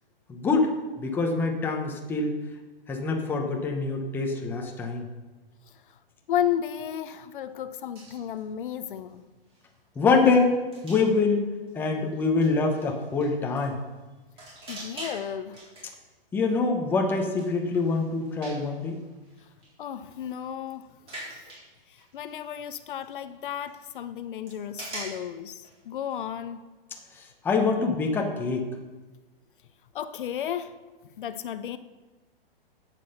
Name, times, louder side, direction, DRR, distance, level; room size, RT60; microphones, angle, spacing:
voice 1, 0.3-0.7 1.0-2.4 2.9-5.1 10.0-10.5 10.8-11.4 11.7-13.8 16.3-19.0 27.1-28.7, left 4 dB, 5° left, 0.8 m, -25 dB
voice 2, 6.3-9.2 14.7-15.6 19.8-20.9 22.1-26.6 29.9-30.8 31.2-31.8, left 10 dB, 60° left, 0.7 m, -33 dB
sound 1, 8.0-8.6 9.0-9.1 9.5-9.7 9.9-10.4 10.7-11.1 11.7-13.7 14.4-15.3 15.5-15.9 16.5-23.3 23.6-23.9 24.5-25.2 25.6-25.8 26.0-26.2, right 1 dB, 20° right, 4.1 m, -44 dB
9.8 x 7.6 x 6.5 m
hypercardioid pair, 160°, 30 cm